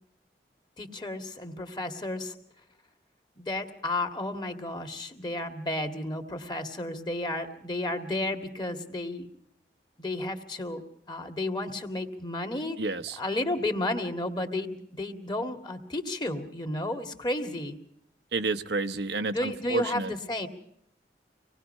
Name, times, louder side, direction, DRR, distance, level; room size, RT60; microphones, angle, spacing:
voice 1, 0.8-2.3 3.4-9.3 10.0-12.8 13.2-17.8 19.3-20.5, left 1 dB, 25° left, 5 dB, 2.0 m, -32 dB
voice 2, 12.8-13.2 18.3-20.1, right 3 dB, 80° right, 10 dB, 0.9 m, -30 dB
25.5 x 19.5 x 5.5 m, 0.70 s
head